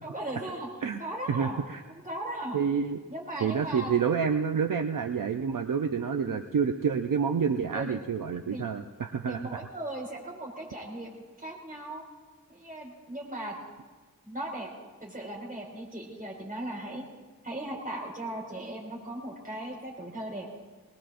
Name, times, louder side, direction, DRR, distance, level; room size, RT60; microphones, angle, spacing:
voice 1, 0.0-0.7 1.0-1.6 1.9-2.6 3.1-4.1 6.2-6.4 7.7-8.0 8.5-8.6 9.3-12.0 12.5-13.6 14.2-14.7 15.0-17.0 17.4-20.5, right 1 dB, 25° right, -2 dB, 4.9 m, -37 dB
voice 2, 1.3-1.8 2.5-3.0 3.4-9.6, right 6 dB, 65° right, 6 dB, 0.6 m, -28 dB
22.5 x 20.0 x 2.5 m, 1.4 s
wide cardioid pair, 70°, 35 cm